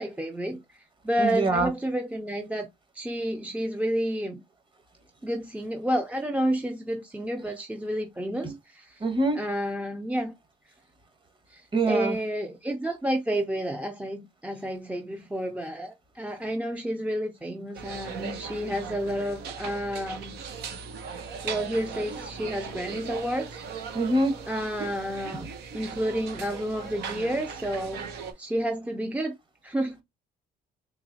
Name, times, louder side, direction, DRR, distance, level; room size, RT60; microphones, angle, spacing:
voice 1, 0.0-2.7 2.9-4.4 5.2-9.1 9.4-10.3 11.5-20.4 21.4-24.0 24.5-25.5 25.7-28.1 28.4-29.3 29.6-30.0, equal, 10° right, 0.5 m, -30 dB
voice 2, 1.2-1.7 8.4-8.5 9.0-9.4 11.7-12.2 23.9-24.4, right 2 dB, 30° right, 1.4 m, -24 dB
sound 1, 17.7-28.3, right 6 dB, 75° right, 0.8 m, -38 dB
3.9 x 3.0 x 2.7 m
cardioid pair, 110°, 17 cm